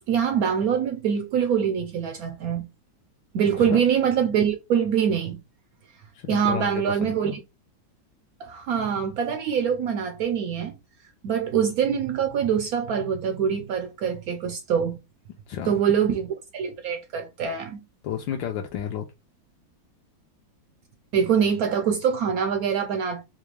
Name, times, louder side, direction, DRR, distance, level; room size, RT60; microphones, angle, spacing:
voice 1, 0.1-2.7 3.3-5.4 6.3-7.4 8.4-10.7 11.2-15.0 15.7-17.8 21.1-23.2, right 7 dB, 80° right, 0.8 m, -24 dB
voice 2, 6.1-7.4 15.5-15.8 18.0-19.1, left 9 dB, 75° left, 1.3 m, -32 dB
4.2 x 2.4 x 3.1 m
omnidirectional pair, 2.1 m